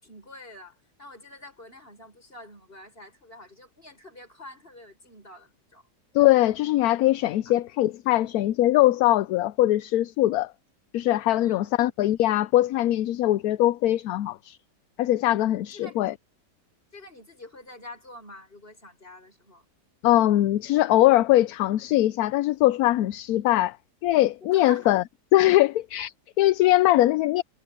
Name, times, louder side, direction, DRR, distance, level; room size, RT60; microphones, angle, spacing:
voice 1, 0.0-5.9 7.4-7.5 11.4-11.7 15.7-16.0 16.9-19.7 24.5-25.0, left 2 dB, 35° left, 6.6 m, -46 dB
voice 2, 6.1-10.5 10.9-14.6 15.0-16.1 20.0-23.8 24.0-25.0 25.3-27.4, left 15 dB, 70° left, 1.0 m, -21 dB
omnidirectional pair, 1.8 m